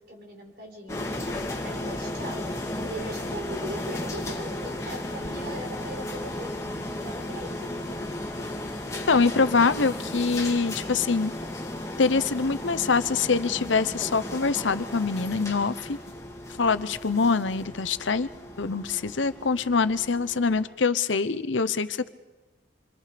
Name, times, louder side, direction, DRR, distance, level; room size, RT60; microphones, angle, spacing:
voice 1, 0.1-1.0 1.6-2.4 2.8-8.0, right 1 dB, 50° right, 2 dB, 4.3 m, -40 dB
sound 1, 0.9-20.6, left 1 dB, 15° left, 2.2 m, -35 dB
voice 2, 9.1-11.3 12.0-16.0 16.5-18.3 18.6-22.1, left 4 dB, 75° left, 13 dB, 0.8 m, -24 dB
28.0 x 25.0 x 5.1 m, 1.1 s
head